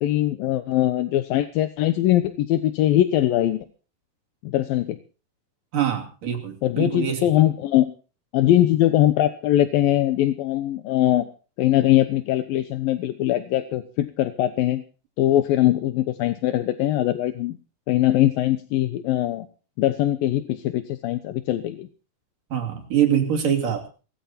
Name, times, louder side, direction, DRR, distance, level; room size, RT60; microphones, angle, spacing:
voice 1, 0.0-3.6 4.4-5.0 6.6-7.9 8.3-11.3 11.6-14.8 15.2-17.6 17.9-19.5 19.8-21.9, left 13 dB, 80° left, 10 dB, 2.7 m, -21 dB
voice 2, 5.7-7.3 22.5-23.9, right 9 dB, 65° right, 2 dB, 4.2 m, -24 dB
18.5 x 15.0 x 4.2 m, 0.37 s
omnidirectional pair, 4.2 m